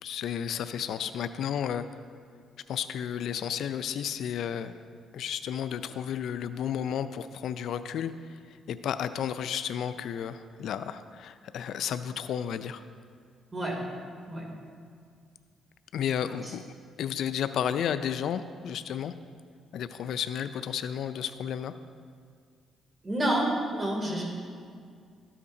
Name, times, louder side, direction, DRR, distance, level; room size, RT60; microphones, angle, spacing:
voice 1, 0.0-1.8 2.7-4.7 5.1-12.8 15.9-16.6 17.0-19.1 19.7-21.7, left 9 dB, 75° left, 11 dB, 0.3 m, -32 dB
voice 2, 23.0-24.2, right 1 dB, 25° right, -1 dB, 2.4 m, -28 dB
13.5 x 8.5 x 2.7 m, 2.1 s
cardioid pair, 90°, 0 cm